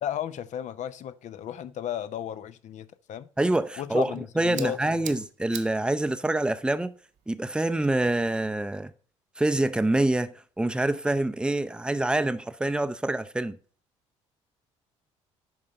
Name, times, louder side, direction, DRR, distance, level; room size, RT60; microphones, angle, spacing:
voice 1, 0.0-3.3 3.8-5.2, left 10 dB, 50° left, 0.6 m, -34 dB
voice 2, 3.4-6.9 7.3-8.9 9.4-13.6, right 2 dB, 5° right, 0.6 m, -26 dB
sound 1, 3.7-8.7, right 10 dB, 50° right, 0.8 m, -46 dB
10.5 x 3.7 x 5.3 m
hypercardioid pair, 55°, 16 cm